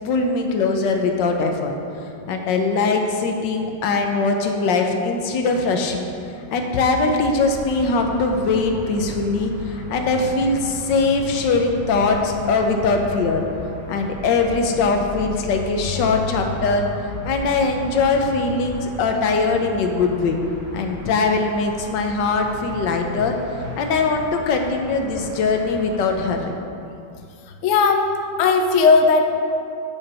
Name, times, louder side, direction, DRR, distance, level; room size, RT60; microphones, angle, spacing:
voice 1, 0.0-1.7 2.3-6.1 6.5-13.4 13.9-16.8 17.2-20.4 20.7-23.4 23.8-26.5, left 3 dB, 70° left, 3 dB, 1.4 m, -21 dB
sound 1, 7.3-26.3, left 1 dB, 5° left, 1.8 m, -35 dB
voice 2, 27.6-28.0 28.4-29.2, left 4 dB, 90° left, 3 dB, 0.6 m, -15 dB
9.4 x 5.2 x 5.5 m, 2.5 s
omnidirectional pair, 2.2 m